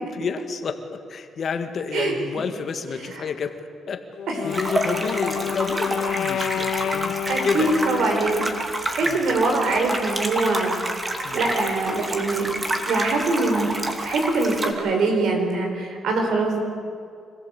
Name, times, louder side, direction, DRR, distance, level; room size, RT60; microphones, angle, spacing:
voice 1, 0.1-3.6 3.9-4.0 4.4-7.2 7.4-7.7 9.0-9.2 11.2-11.4, left 6 dB, 55° left, 7 dB, 1.8 m, -30 dB
Wind instrument woodwind instrument, 4.1-8.7, left 9 dB, 70° left, 0.8 m, -29 dB
sound 1, 4.5-14.7, right 1 dB, 25° right, 2.6 m, -28 dB
voice 2, 7.3-8.5 8.9-10.7 11.3-12.5 12.9-16.6, right 3 dB, 75° right, 3 dB, 4.7 m, -23 dB
25.0 x 15.5 x 8.3 m, 2.3 s
cardioid pair, 90°, 0 cm